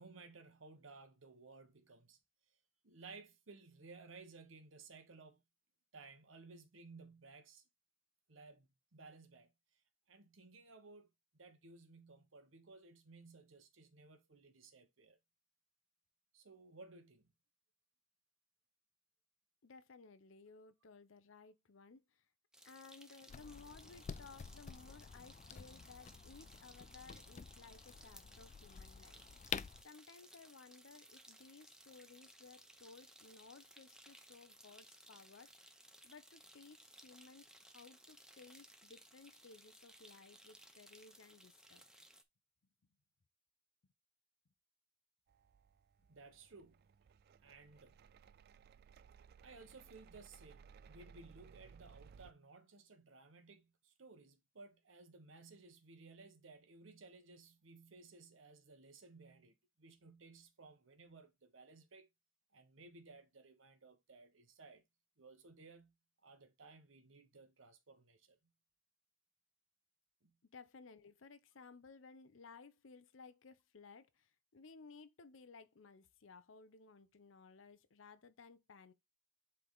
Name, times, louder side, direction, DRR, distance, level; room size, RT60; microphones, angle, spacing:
voice 1, 0.0-2.2 2.8-5.4 5.9-7.6 8.3-9.8 10.1-11.1 11.3-15.2 16.3-17.3 46.1-46.8 47.4-48.0 49.4-62.1 62.5-64.8 65.2-65.9 66.2-68.4 70.2-70.3, right 3 dB, 80° right, 1.0 m, -58 dB
voice 2, 19.6-22.3 22.6-35.8 36.0-41.8 70.4-78.9, left 4 dB, 80° left, 0.7 m, -59 dB
sound 1, 22.5-42.2, right 1 dB, 5° right, 0.6 m, -61 dB
sound 2, 23.3-29.8, left 7 dB, 35° left, 0.3 m, -49 dB
sound 3, 45.3-52.3, right 6 dB, 50° right, 0.3 m, -61 dB
7.7 x 3.5 x 3.9 m
head